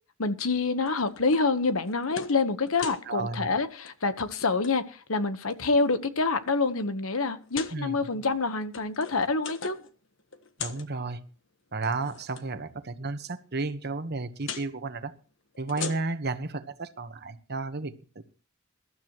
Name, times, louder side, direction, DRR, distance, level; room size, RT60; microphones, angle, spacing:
voice 1, 0.2-9.8, left 3 dB, 85° left, 1.2 m, -27 dB
sound 1, 0.9-1.5 1.8-2.4 2.7-3.0 3.7-3.9 4.2-4.7 5.4-5.9 6.5-6.6 7.4-7.8 8.5-9.9 10.2-10.9 11.7-12.4 14.4-14.7 15.5-16.3, left 6 dB, 65° left, 1.4 m, -39 dB
voice 2, 3.1-3.5 7.7-8.0 10.6-11.2 11.7-15.1 15.6-18.2, right 3 dB, 50° right, 1.2 m, -33 dB
22.0 x 12.5 x 3.1 m
head